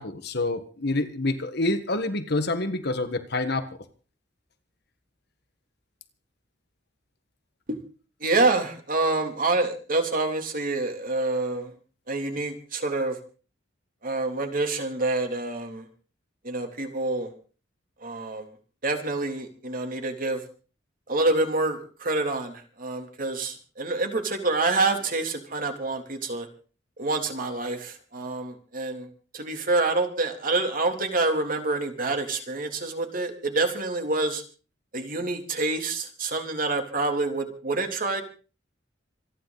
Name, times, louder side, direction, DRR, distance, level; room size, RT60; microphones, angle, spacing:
voice 1, 0.0-3.8, left 2 dB, 60° left, 10 dB, 1.6 m, -27 dB
voice 2, 8.2-11.7 12.1-13.2 14.0-15.8 16.4-17.3 18.0-18.5 18.8-20.4 21.1-26.5 27.0-29.1 29.3-34.4 34.9-38.2, right 2 dB, 50° right, 4 dB, 3.3 m, -27 dB
27.0 x 10.5 x 4.1 m, 0.38 s
head